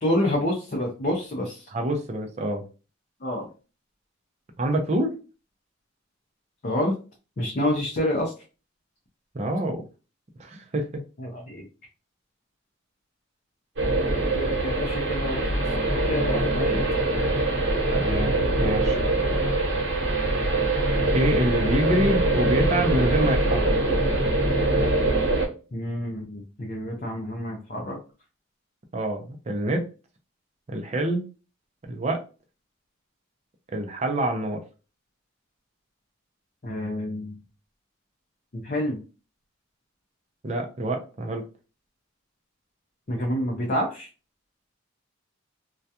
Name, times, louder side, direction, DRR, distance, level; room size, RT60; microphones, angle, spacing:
voice 1, 0.0-1.7 3.2-3.5 6.6-7.0 7.4-8.3 11.2-11.7 14.3-16.8 25.7-28.0 36.6-37.4 38.5-39.0 43.1-44.1, left 1 dB, 40° left, -2 dB, 0.5 m, -28 dB
voice 2, 1.7-2.6 4.6-5.1 9.3-9.8 10.4-11.0 17.9-19.0 21.1-23.7 28.9-29.9 30.7-31.3 31.9-32.2 33.7-34.6 40.4-41.4, right 1 dB, 35° right, 4 dB, 0.4 m, -26 dB
sound 1, 13.8-25.5, right 2 dB, 70° right, 1.0 m, -23 dB
2.3 x 2.2 x 2.7 m, 0.33 s
head